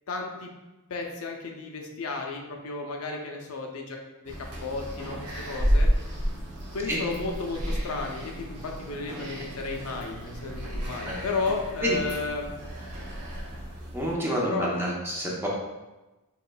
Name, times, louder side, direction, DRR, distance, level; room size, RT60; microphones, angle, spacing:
voice 1, 0.1-0.5 0.9-4.3 4.6-5.9 6.7-12.5 14.4-15.0, left 3 dB, 70° left, 1 dB, 0.5 m, -33 dB
sound 1, 4.2-14.2, equal, 85° right, 0.8 m, -31 dB
voice 2, 13.9-15.5, equal, 10° right, -4 dB, 0.7 m, -29 dB
4.7 x 3.0 x 2.2 m, 1.1 s
head